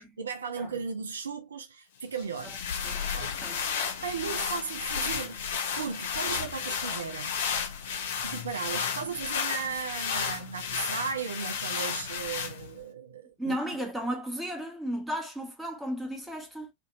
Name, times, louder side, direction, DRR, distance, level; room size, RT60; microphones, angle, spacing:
voice 1, 0.0-2.6 3.1-3.3 4.0-5.4 5.7-7.4 8.2-13.6, right 5 dB, 70° right, 0.5 m, -36 dB
sound 1, 2.2-12.8, left 7 dB, 60° left, 0.7 m, -33 dB
voice 2, 13.4-16.7, equal, 5° right, 1.2 m, -34 dB
2.7 x 2.7 x 3.6 m
figure-of-eight pair, 90°, 0 cm